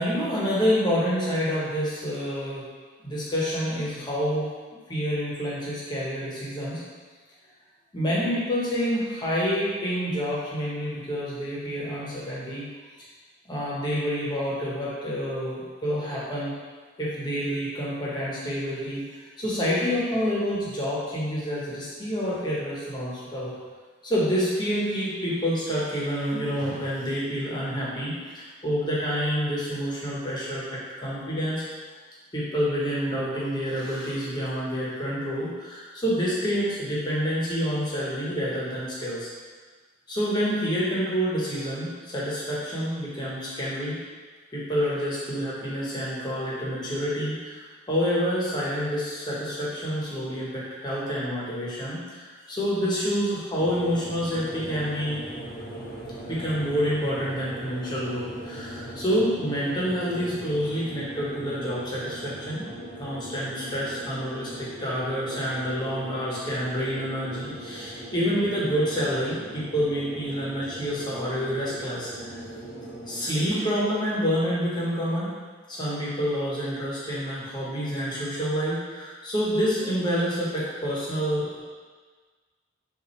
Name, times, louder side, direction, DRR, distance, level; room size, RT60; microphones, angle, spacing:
voice 1, 0.0-2.7 3.0-4.5 4.9-6.8 7.9-12.7 13.4-16.5 17.0-19.1 19.4-23.6 24.0-31.6 32.3-39.3 40.1-44.0 44.5-47.6 47.9-55.2 56.3-62.7 63.0-72.4 73.1-75.3 75.7-81.6, equal, 20° left, -7 dB, 1.0 m, -28 dB
sound 1, 53.6-73.5, right 1 dB, 45° left, 1.0 m, -40 dB
5.4 x 2.6 x 3.1 m, 1.4 s
head